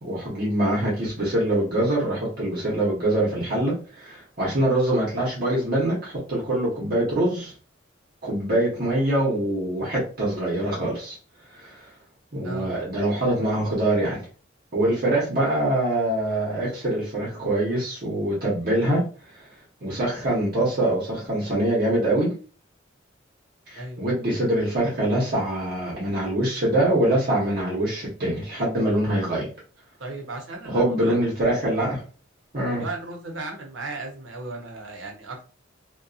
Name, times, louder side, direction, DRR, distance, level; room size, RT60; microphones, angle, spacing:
voice 1, 0.0-7.5 8.2-11.2 11.5-11.9 12.3-14.2 14.7-19.0 19.3-19.4 19.8-22.3 23.7-29.5 30.6-32.0 32.5-32.8, right 1 dB, 50° right, -5 dB, 0.9 m, -24 dB
voice 2, 12.4-12.8 23.7-24.1 30.0-31.2 32.7-35.5, right 2 dB, 80° right, 2 dB, 0.8 m, -36 dB
2.7 x 2.2 x 2.4 m, 0.38 s
head